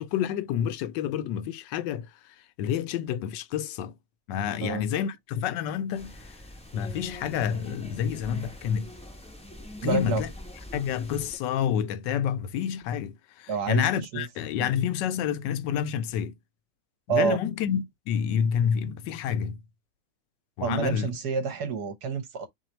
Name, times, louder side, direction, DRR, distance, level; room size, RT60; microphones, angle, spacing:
voice 1, 0.0-4.0 4.3-6.4 6.7-8.9 9.8-10.3 10.7-16.4 17.1-19.6 20.6-21.1, left 8 dB, 80° left, 1.2 m, -29 dB
sound 1, 5.9-11.4, left 1 dB, 5° left, 0.5 m, -44 dB
voice 2, 9.8-10.2 13.5-13.9 14.1-14.2 14.6-14.7 17.1-17.4 20.6-22.5, right 5 dB, 65° right, 1.4 m, -28 dB
3.8 x 3.2 x 4.3 m
omnidirectional pair, 1.9 m